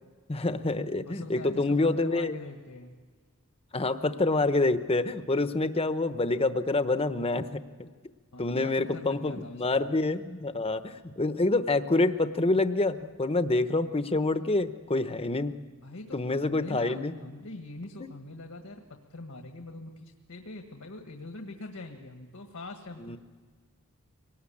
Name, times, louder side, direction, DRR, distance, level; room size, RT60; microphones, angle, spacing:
voice 1, 0.3-2.4 3.7-7.9 8.4-15.5 16.1-17.1 18.0-18.1 23.0-23.2, left 2 dB, 25° left, 11 dB, 0.9 m, -27 dB
voice 2, 1.1-2.9 8.3-9.9 15.8-23.2, left 2 dB, 75° left, 4 dB, 1.6 m, -43 dB
24.0 x 19.5 x 8.6 m, 1.5 s
head